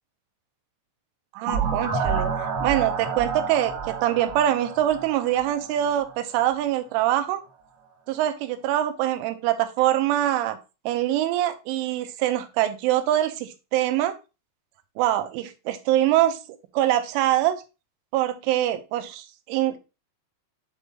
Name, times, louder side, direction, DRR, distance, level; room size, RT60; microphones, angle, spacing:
voice 1, 1.3-2.3 2.6-7.4 8.1-10.6 10.9-14.1 15.0-16.4 16.7-17.6 18.1-19.8, right 13 dB, 90° right, 9 dB, 3.2 m, -24 dB
sound 1, 1.5-6.2, right 5 dB, 55° right, 2.8 m, -29 dB
8.2 x 3.5 x 3.8 m, 0.29 s
omnidirectional pair, 5.4 m